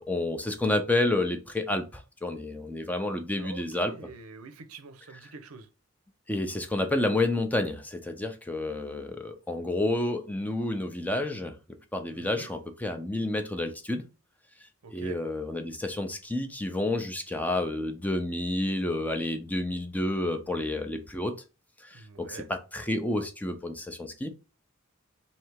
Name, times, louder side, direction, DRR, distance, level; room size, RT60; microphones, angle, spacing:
voice 1, 0.0-3.9 6.3-11.6 11.9-14.0 14.9-21.3 21.8-24.3, left 2 dB, 5° left, 0.5 m, -30 dB
voice 2, 3.4-5.7 12.1-12.5 14.8-15.2 21.9-22.5, right 4 dB, 80° right, 0.6 m, -45 dB
3.3 x 2.8 x 4.5 m
head